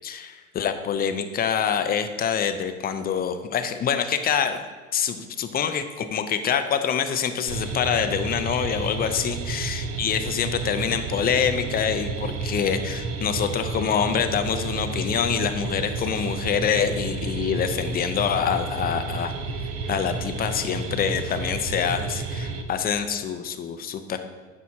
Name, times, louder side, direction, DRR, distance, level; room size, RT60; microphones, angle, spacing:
voice 1, 0.0-4.6 4.9-19.3 19.9-24.3, left 7 dB, 25° left, 9 dB, 0.5 m, -26 dB
sound 1, 7.5-22.6, right 3 dB, 35° right, 0.8 m, -31 dB
9.2 x 6.1 x 2.8 m, 1.4 s
hypercardioid pair, 100°, 40 cm